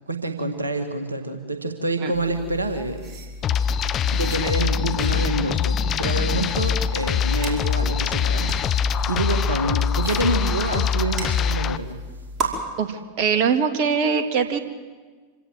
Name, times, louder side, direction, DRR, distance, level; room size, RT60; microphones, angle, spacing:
voice 1, 0.1-3.1 3.4-12.0, right 2 dB, 80° right, 7 dB, 1.7 m, -27 dB
sound 1, 2.1-12.5, right 2 dB, 30° right, 4.9 m, -36 dB
sound 2, 3.4-11.8, left 7 dB, 30° left, 0.8 m, -23 dB
voice 2, 12.8-14.6, right 6 dB, 45° right, 7 dB, 2.2 m, -22 dB
26.5 x 17.0 x 7.7 m, 1.4 s
figure-of-eight pair, 90°, 0 cm